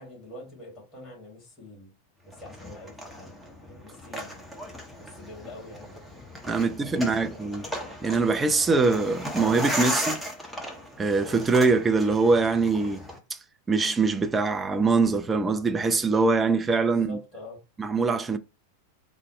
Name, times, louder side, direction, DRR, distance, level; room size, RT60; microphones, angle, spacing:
voice 1, 0.0-1.9 2.2-4.4 5.0-6.2 6.5-7.5 16.9-17.6, left 1 dB, 25° left, 2.2 m, -46 dB
sound 1, 2.3-13.2, equal, ahead, 0.9 m, -36 dB
voice 2, 6.5-7.6 8.0-10.2 11.0-13.0 13.3-13.4 13.7-17.2 17.8-18.4, right 4 dB, 15° right, 0.4 m, -23 dB
4.0 x 2.0 x 4.2 m
figure-of-eight pair, 90°, 0 cm